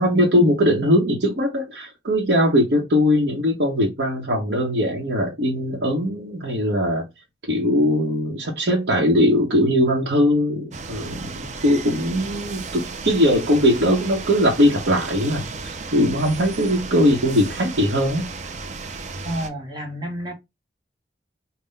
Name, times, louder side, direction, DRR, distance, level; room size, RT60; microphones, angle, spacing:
voice 1, 0.0-7.0 7.5-18.3, equal, 70° right, 0.9 m, -20 dB
sound 1, 10.7-19.5, right 4 dB, 40° right, 0.4 m, -34 dB
voice 2, 19.2-20.3, right 1 dB, 25° right, 1.0 m, -30 dB
3.8 x 2.1 x 3.9 m
head